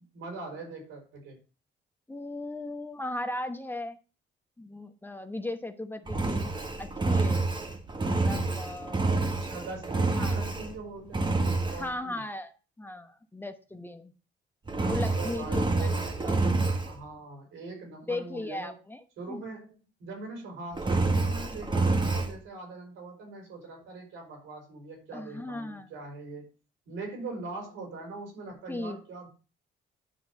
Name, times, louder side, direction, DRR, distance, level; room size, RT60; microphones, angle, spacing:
voice 1, 0.1-1.4 6.1-6.2 9.1-12.2 15.0-16.5 16.8-18.8 19.2-19.7 20.0-26.5 26.8-29.3, right 3 dB, 85° right, 2 dB, 4.6 m, -42 dB
voice 2, 2.1-4.0 4.6-6.5 6.8-7.5 8.1-9.1 10.2-10.4 11.7-12.5 12.8-14.1 14.9-16.4 18.1-19.0 19.3-19.4 25.1-25.9 28.7-29.0, left 2 dB, 10° left, 7 dB, 0.9 m, -37 dB
Engine, 6.1-10.8 11.1-11.9 14.7-16.9 20.7-22.3, right 3 dB, 25° right, 1.5 m, -28 dB
10.0 x 3.9 x 7.0 m, 0.34 s
cardioid pair, 90°, 20 cm